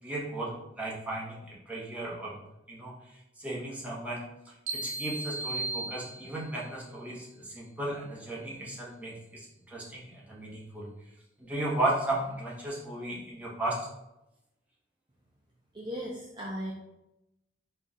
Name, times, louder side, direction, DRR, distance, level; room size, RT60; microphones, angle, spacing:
voice 1, 0.0-2.4 2.7-10.9 11.4-13.9, right 1 dB, 10° right, -6 dB, 0.9 m, -35 dB
sound 1, 4.7-6.6, right 2 dB, 75° right, 0.6 m, -36 dB
voice 2, 15.7-16.7, equal, 25° right, -4 dB, 0.5 m, -36 dB
4.4 x 2.3 x 3.7 m, 0.91 s
head